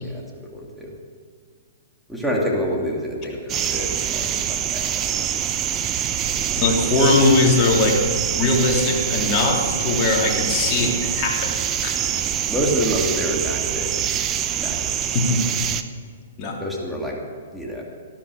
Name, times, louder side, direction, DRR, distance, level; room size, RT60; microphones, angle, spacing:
voice 1, 0.0-0.9 2.1-5.3 12.5-13.9 14.5-15.1 16.6-17.2 17.5-17.8, equal, ahead, -2 dB, 2.6 m, -27 dB
sound 1, 3.5-15.8, right 9 dB, 25° right, 0.8 m, -25 dB
voice 2, 6.6-8.0 8.3-11.5 11.8-12.0 15.1-15.4 16.4-16.6, left 3 dB, 35° left, -2 dB, 3.3 m, -20 dB
14.5 x 12.5 x 5.0 m, 2.1 s
hypercardioid pair, 130°, 0 cm